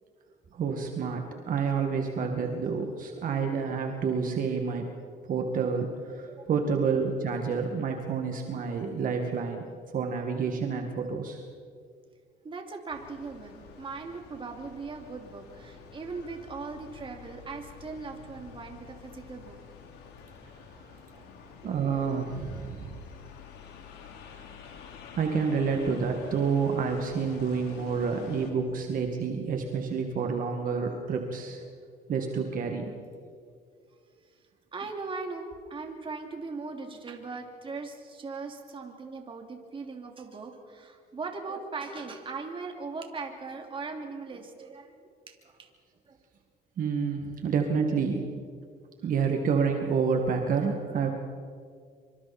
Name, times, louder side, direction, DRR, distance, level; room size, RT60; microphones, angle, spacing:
voice 1, 0.5-4.9 5.3-9.6 9.9-11.4 21.6-23.0 25.1-31.6 32.1-32.9 46.8-48.2 49.0-51.1, right 5 dB, 55° right, 3 dB, 2.2 m, -29 dB
voice 2, 12.4-19.6 20.7-20.8 21.1-21.5 34.7-45.7 46.1-46.2, right 4 dB, 30° right, 3 dB, 2.9 m, -39 dB
sound 1, 12.9-28.5, left 6 dB, 80° left, 3.3 m, -48 dB
25.5 x 25.0 x 4.5 m, 2.1 s
cardioid pair, 110°, 17 cm